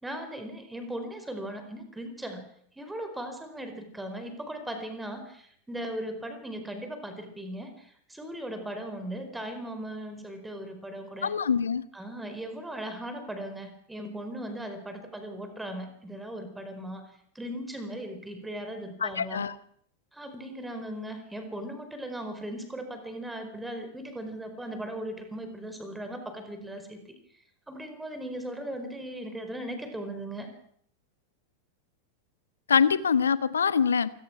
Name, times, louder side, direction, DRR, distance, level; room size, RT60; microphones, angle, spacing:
voice 1, 0.0-2.5 2.8-11.3 11.9-19.4 20.1-27.0 27.7-30.5, right 1 dB, 5° right, 8 dB, 4.6 m, -38 dB
voice 2, 11.2-11.8 19.0-19.5 32.7-34.1, left 6 dB, 70° left, 16 dB, 1.1 m, -24 dB
28.0 x 17.5 x 6.1 m, 0.65 s
figure-of-eight pair, 90°, 0 cm